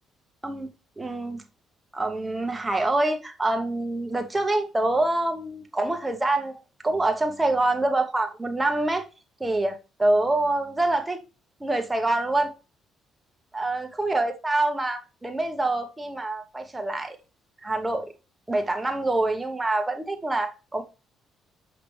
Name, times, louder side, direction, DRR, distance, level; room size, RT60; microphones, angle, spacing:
voice 1, 1.0-1.4 1.9-9.0 9.4-11.2 11.6-12.5 13.5-17.2 17.6-18.1 18.5-20.8, right 2 dB, 10° right, 1.1 m, -26 dB
5.8 x 5.1 x 3.2 m
cardioid pair, 120°, 0 cm